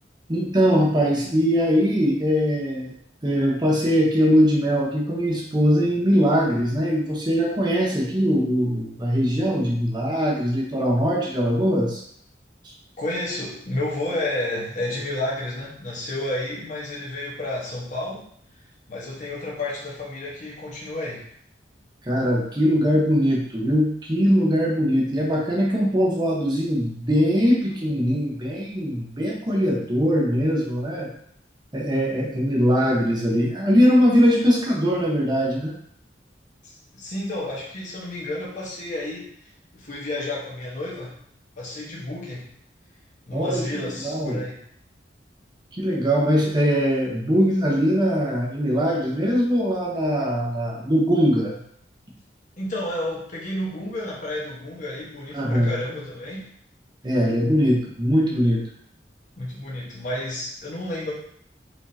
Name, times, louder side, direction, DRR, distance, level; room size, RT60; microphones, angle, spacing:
voice 1, 0.3-2.9 3.2-12.0 22.1-31.1 31.7-35.7 43.3-44.4 45.7-51.5 55.3-55.7 57.0-58.6, equal, 25° right, -2 dB, 1.0 m, -21 dB
voice 2, 13.0-18.2 18.9-21.2 36.6-39.5 39.7-41.2 41.6-42.5 43.3-44.6 52.6-56.5 59.4-61.1, left 1 dB, 45° left, -5 dB, 1.3 m, -31 dB
4.7 x 3.6 x 2.8 m, 0.65 s
head